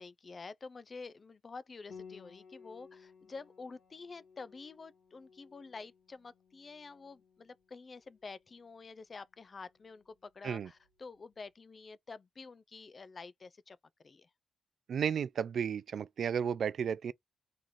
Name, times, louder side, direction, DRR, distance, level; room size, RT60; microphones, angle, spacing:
voice 1, 0.0-13.8 14.0-14.3, left 4 dB, 45° left, 0.5 m, -49 dB
Piano, 1.9-11.2, left 6 dB, 80° left, 2.0 m, -58 dB
voice 2, 14.9-17.1, right 7 dB, 70° right, 0.3 m, -33 dB
3.7 x 3.1 x 2.5 m
cardioid pair, 75°, 0 cm